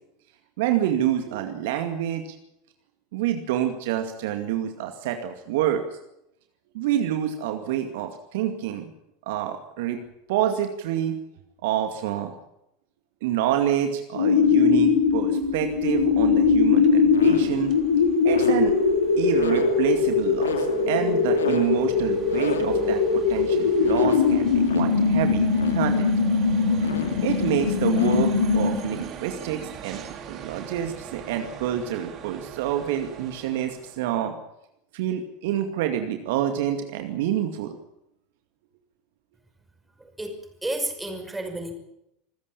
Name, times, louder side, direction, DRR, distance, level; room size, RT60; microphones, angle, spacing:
voice 1, 0.6-2.4 3.1-5.9 6.7-8.9 9.3-10.0 10.3-11.2 11.6-12.3 13.2-17.7 18.2-18.7 19.2-23.0 23.3-25.4 25.7-26.1 27.2-34.4 34.9-37.7, right 10 dB, 60° right, 6 dB, 2.2 m, -27 dB
sound 1, 14.1-29.0, left 5 dB, 75° left, 2.3 m, -21 dB
sound 2, 14.3-34.1, right 8 dB, 40° right, 3.4 m, -42 dB
voice 2, 40.0-41.7, right 1 dB, 10° right, 5 dB, 5.7 m, -32 dB
26.0 x 15.0 x 8.7 m, 0.82 s
figure-of-eight pair, 75°, 0 cm